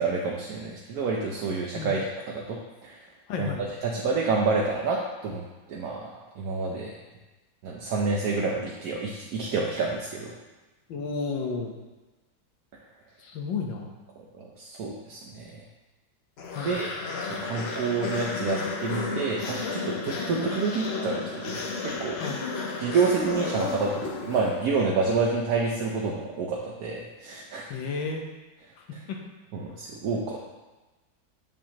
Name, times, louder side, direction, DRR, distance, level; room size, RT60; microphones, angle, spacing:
voice 1, 0.0-2.6 2.8-3.0 3.4-3.5 3.8-5.4 5.7-6.9 7.6-10.3 14.4-15.6 16.6-16.9 17.3-22.2 22.8-27.6 29.5-30.4, right 4 dB, 65° right, -2 dB, 1.1 m, -28 dB
voice 2, 3.3-3.6 10.9-11.7 13.2-13.9 16.6-16.8 22.2-22.4 27.7-28.2 29.1-29.2, left 4 dB, 85° left, 1 dB, 1.6 m, -32 dB
sound 1, 16.4-24.8, left 4 dB, 65° left, 0.6 m, -33 dB
7.5 x 5.5 x 2.9 m, 1.2 s
omnidirectional pair, 2.0 m